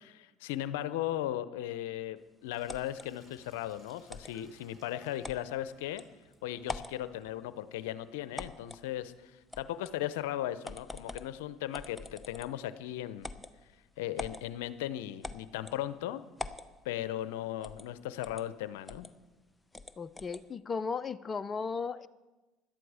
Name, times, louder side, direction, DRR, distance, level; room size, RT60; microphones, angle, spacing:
voice 1, 0.0-6.0 6.4-13.3 14.0-16.2 16.8-19.1, left 13 dB, 80° left, 14 dB, 0.7 m, -37 dB
Sink (filling or washing), 2.4-10.2, right 1 dB, 20° right, 3.7 m, -65 dB
sound 1, 2.7-3.1 4.1-4.3 5.2-5.4 6.0-6.1 6.6-7.0 8.4-8.8 9.5-10.0 10.6-11.3 11.7-12.6 13.2-13.5 14.2-14.4 15.2-15.8 16.4-16.7 17.6-17.9 18.2-18.4 18.9-19.1 19.7-20.4, left 2 dB, 10° left, 0.9 m, -42 dB
voice 2, 20.0-22.1, left 5 dB, 30° left, 12 dB, 0.6 m, -35 dB
17.0 x 12.0 x 4.9 m, 1.1 s
hypercardioid pair, 80°, 0 cm